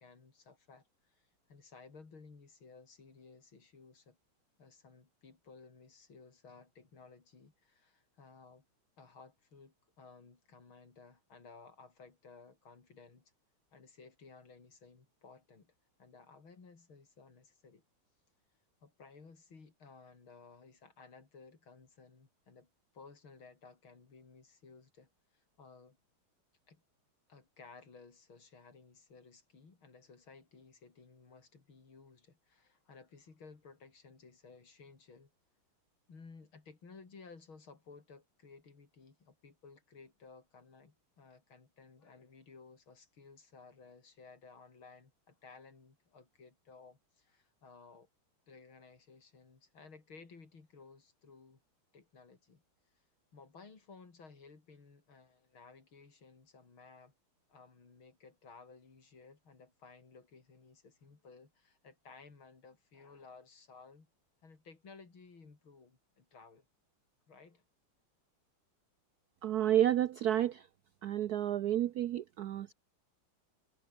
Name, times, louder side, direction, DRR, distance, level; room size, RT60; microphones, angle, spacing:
voice 1, 0.0-4.2 4.6-8.6 9.0-13.3 13.7-15.7 16.0-17.8 18.8-26.0 26.7-26.8 27.3-35.3 36.1-48.1 48.5-51.6 51.9-52.6 52.9-53.0 53.3-57.1 57.5-64.1 64.4-66.7 67.3-67.6, left 4 dB, 70° left, 4.6 m, -57 dB
voice 2, 69.4-70.7 71.0-72.7, right 12 dB, 70° right, 0.9 m, -30 dB
omnidirectional pair, 2.3 m